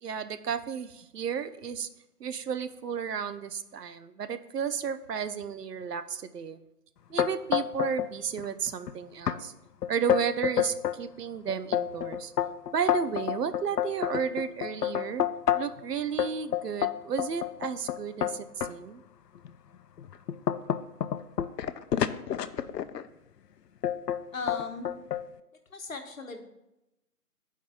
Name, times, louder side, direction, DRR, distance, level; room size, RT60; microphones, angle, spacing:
voice 1, 0.0-1.9 2.2-6.6 7.1-9.5 9.9-12.3 12.7-15.2 15.5-19.0, right 7 dB, 80° right, 11 dB, 0.6 m, -33 dB
sound 1, 7.2-8.1 8.4-8.9 9.3-9.4 9.8-11.0 11.5-15.8 16.2-18.7 19.4-19.5 20.0-23.1 23.8-24.2 24.5-25.2, left 10 dB, 90° left, 0.5 m, -28 dB
voice 2, 24.3-24.9 25.7-26.4, left 3 dB, 60° left, 5 dB, 1.0 m, -37 dB
11.0 x 4.6 x 2.3 m, 0.91 s
figure-of-eight pair, 165°, 47 cm